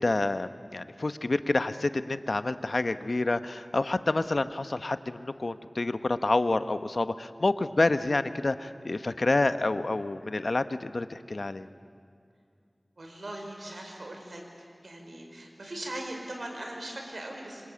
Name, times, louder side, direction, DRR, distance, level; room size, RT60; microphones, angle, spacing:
voice 1, 0.0-11.7, left 2 dB, 75° left, 11 dB, 1.0 m, -28 dB
voice 2, 13.0-14.4 14.8-17.7, right 1 dB, 85° right, 2 dB, 5.0 m, -40 dB
26.0 x 25.5 x 8.6 m, 2.3 s
wide cardioid pair, 40°, 0 cm